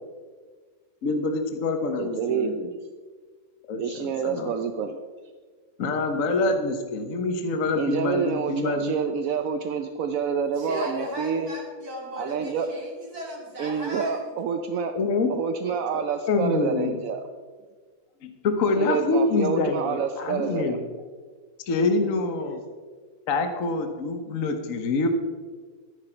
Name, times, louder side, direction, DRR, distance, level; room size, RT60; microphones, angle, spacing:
voice 1, 1.0-2.7 3.7-4.5 5.8-9.0 14.9-15.3 15.9-17.0 18.2-20.8 21.7-22.6 23.3-25.1, left 3 dB, 50° left, 6 dB, 1.3 m, -26 dB
voice 2, 2.0-2.5 3.8-5.0 7.8-11.5 12.2-12.7 13.6-14.9 15.3-17.2 18.8-20.8, right 6 dB, 65° right, 7 dB, 0.8 m, -28 dB
voice 3, 10.6-14.2, equal, 50° right, -2 dB, 3.2 m, -36 dB
14.0 x 10.0 x 4.5 m, 1.5 s
omnidirectional pair, 2.2 m